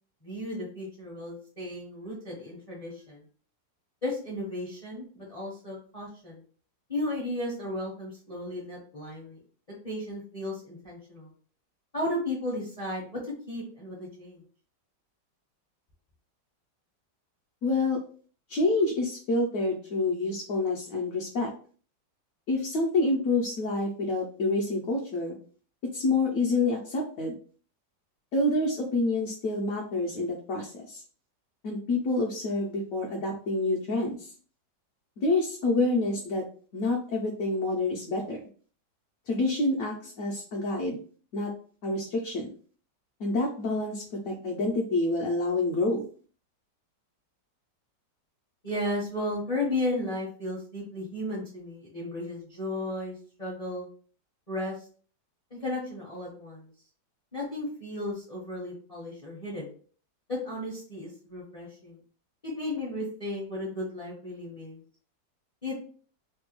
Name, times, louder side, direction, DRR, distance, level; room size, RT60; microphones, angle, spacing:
voice 1, 0.2-3.2 4.0-6.4 6.9-9.4 9.8-11.3 11.9-14.4 48.6-53.9 54.5-54.8 55.5-56.7 57.3-59.7 60.3-62.0 62.4-64.8 65.6-65.8, left 1 dB, 35° left, -4 dB, 0.6 m, -34 dB
voice 2, 17.6-18.0 18.5-21.5 22.5-25.4 25.9-27.3 28.3-31.0 31.6-34.3 35.2-36.4 36.7-38.4 39.3-41.0 41.3-41.5 41.8-42.5 43.2-46.0, left 2 dB, 65° left, -1 dB, 0.9 m, -27 dB
3.3 x 2.2 x 2.9 m, 0.43 s
omnidirectional pair, 1.9 m